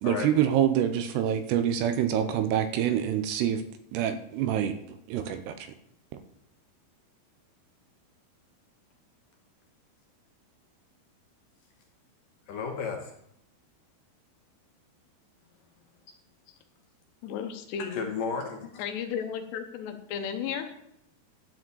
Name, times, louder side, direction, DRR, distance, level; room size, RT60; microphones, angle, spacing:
voice 1, 0.0-3.6 3.9-4.8 5.1-5.7, right 10 dB, 80° right, 10 dB, 2.6 m, -26 dB
voice 2, 12.5-13.1 17.9-18.8, left 5 dB, 65° left, 2 dB, 2.4 m, -33 dB
voice 3, 17.2-18.1 18.8-20.7, left 7 dB, 80° left, 7 dB, 3.0 m, -34 dB
12.0 x 4.9 x 8.2 m, 0.77 s
omnidirectional pair, 5.1 m